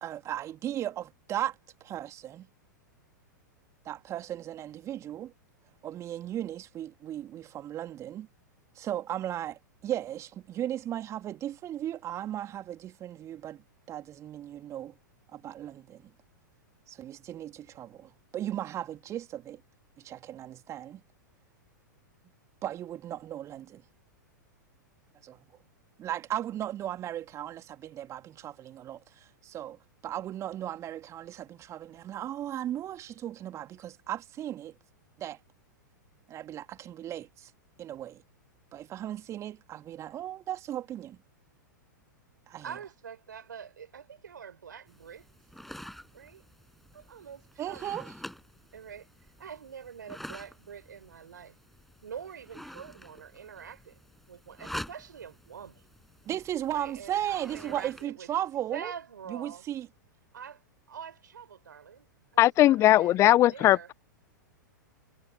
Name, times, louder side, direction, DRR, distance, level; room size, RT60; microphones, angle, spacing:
voice 1, 0.0-2.5 3.8-5.3 5.8-8.3 8.7-15.0 15.3-16.1 16.9-19.6 20.0-21.0 22.6-23.8 25.2-25.5 26.0-34.7 35.2-35.4 36.3-37.5 37.8-38.2 38.7-41.2 42.5-42.7 47.6-48.1 56.2-58.9 59.3-59.9, right 11 dB, 30° right, 2.8 m, -36 dB
voice 2, 42.6-45.3 46.1-46.4 46.9-48.1 48.7-49.1 49.4-51.6 52.0-54.0 54.3-55.8 56.7-58.3 58.7-59.7 60.3-60.6 60.9-62.1 62.4-63.9, right 7 dB, 75° right, 3.9 m, -45 dB
sound 1, 44.9-58.0, equal, ahead, 7.1 m, -47 dB
voice 3, 62.4-63.9, left 14 dB, 25° left, 0.4 m, -20 dB
figure-of-eight pair, 100°, 10 cm